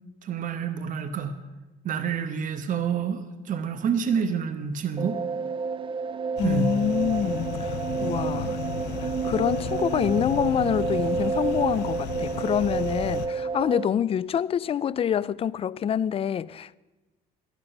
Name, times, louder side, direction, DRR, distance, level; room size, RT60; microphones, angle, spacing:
voice 1, 0.2-1.3 1.8-5.2 6.4-6.7, right 7 dB, 50° right, 1.0 m, -28 dB
sound 1, 5.0-13.9, right 5 dB, 30° right, 0.5 m, -29 dB
sound 2, 6.4-13.3, left 11 dB, 80° left, 0.7 m, -35 dB
voice 2, 6.4-8.6 9.0-16.8, left 8 dB, 35° left, 0.4 m, -26 dB
13.0 x 11.5 x 5.4 m
cardioid pair, 110°, 17 cm